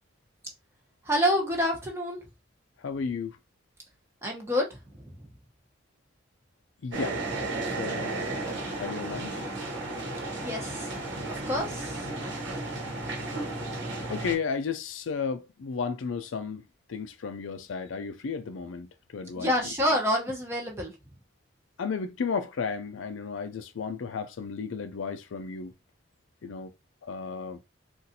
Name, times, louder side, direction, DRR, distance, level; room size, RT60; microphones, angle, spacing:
voice 1, 1.0-2.2 4.2-4.7 4.9-5.0 10.3-10.9 11.3-12.0 19.4-20.9, equal, 15° right, 0.9 m, -27 dB
voice 2, 2.8-3.4 6.8-7.2 7.6-8.2 8.8-9.4 14.1-16.6 16.9-18.9 19.1-19.5 21.8-25.7 26.4-26.7 27.1-27.6, left 5 dB, 85° left, 0.4 m, -33 dB
sound 1, 6.9-14.4, right 2 dB, 70° right, 1.2 m, -34 dB
4.0 x 2.5 x 2.7 m
head